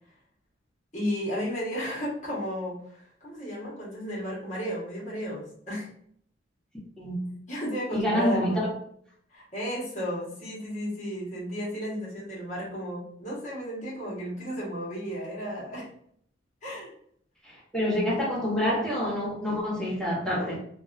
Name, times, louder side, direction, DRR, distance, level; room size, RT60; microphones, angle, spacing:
voice 1, 0.9-5.9 7.5-8.6 9.3-15.9 16.6-16.9, equal, 40° left, -5 dB, 1.0 m, -33 dB
voice 2, 7.0-7.4 7.9-8.7 17.4-20.6, left 1 dB, 5° left, -8 dB, 1.0 m, -27 dB
2.5 x 2.2 x 2.4 m, 0.65 s
head